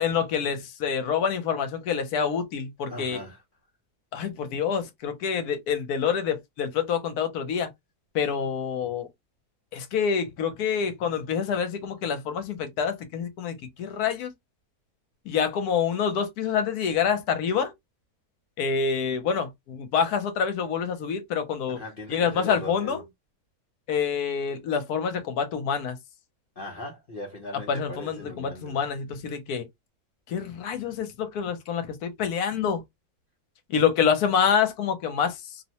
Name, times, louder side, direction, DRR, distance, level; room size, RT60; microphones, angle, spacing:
voice 1, 0.0-3.2 4.1-7.7 8.1-9.1 9.7-14.3 15.3-17.7 18.6-21.8 22.1-23.0 23.9-26.0 27.7-29.7 30.3-32.8 33.7-35.3, left 7 dB, 80° left, 1.1 m, -27 dB
voice 2, 2.9-3.4 21.7-23.0 26.6-28.8, left 1 dB, 55° left, 0.6 m, -39 dB
2.8 x 2.1 x 2.7 m
omnidirectional pair, 1.6 m